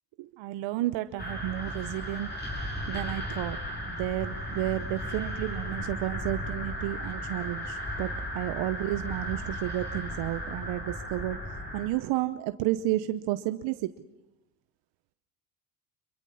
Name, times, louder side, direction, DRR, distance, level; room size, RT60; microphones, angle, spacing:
voice 1, 0.2-2.3 2.9-3.6 3.8-11.4 11.7-13.9, right 15 dB, 65° right, 11 dB, 0.9 m, -31 dB
sound 1, 1.2-11.9, equal, 20° left, 6.5 m, -35 dB
25.5 x 22.5 x 5.7 m, 0.95 s
supercardioid pair, 80°, 47 cm